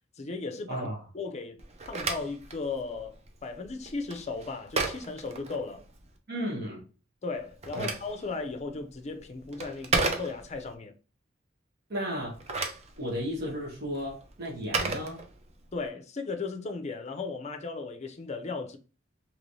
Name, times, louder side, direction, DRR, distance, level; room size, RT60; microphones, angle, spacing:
voice 1, 0.2-0.9 1.1-1.6 1.9-5.8 7.2-10.9 15.7-18.8, left 3 dB, 35° left, 0.5 m, -36 dB
voice 2, 0.7-1.0 6.3-6.9 7.7-7.9 11.9-12.4 13.0-15.2, equal, 55° right, 1.2 m, -34 dB
Telephone, 1.6-6.1 7.3-10.7 12.2-15.8, right 3 dB, 35° right, 0.6 m, -35 dB
3.2 x 3.0 x 2.6 m
head